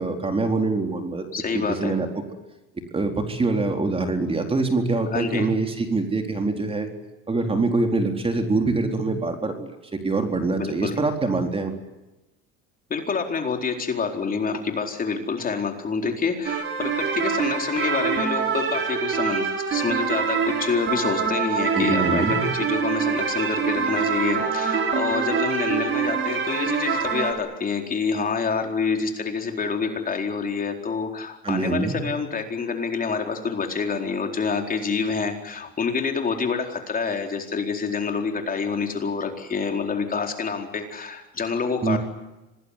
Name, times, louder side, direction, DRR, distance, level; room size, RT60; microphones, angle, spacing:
voice 1, 0.0-1.2 1.5-2.1 2.9-6.9 7.3-9.7 10.0-11.7 21.7-22.4 31.4-32.0 41.8-42.0, right 3 dB, 20° right, 4 dB, 4.1 m, -24 dB
voice 2, 1.3-2.0 5.1-5.5 10.5-11.0 12.9-42.0, left 5 dB, 30° left, 4 dB, 4.3 m, -27 dB
sound 1, 16.5-27.3, right 6 dB, 45° right, 6.7 m, -25 dB
26.5 x 19.5 x 9.8 m, 0.99 s
cardioid pair, 115°, 30 cm